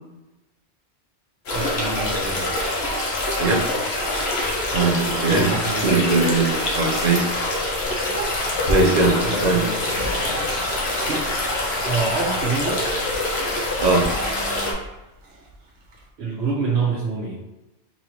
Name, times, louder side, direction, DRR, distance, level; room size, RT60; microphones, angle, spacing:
sound 1, 1.5-14.7, left 1 dB, 65° left, 1.2 m, -25 dB
voice 1, 1.5-2.5 5.3-6.1 9.2-10.2 11.1-11.3 11.8-12.8 16.2-17.4, right 4 dB, 65° right, -5 dB, 1.0 m, -26 dB
voice 2, 4.7-5.5 5.8-7.3 8.7-9.6 13.8-14.1, right 3 dB, 45° right, 0 dB, 0.8 m, -20 dB
sound 2, 7.8-16.1, right 2 dB, 80° right, 1.2 m, -38 dB
4.0 x 3.1 x 3.9 m, 1.0 s
omnidirectional pair, 1.2 m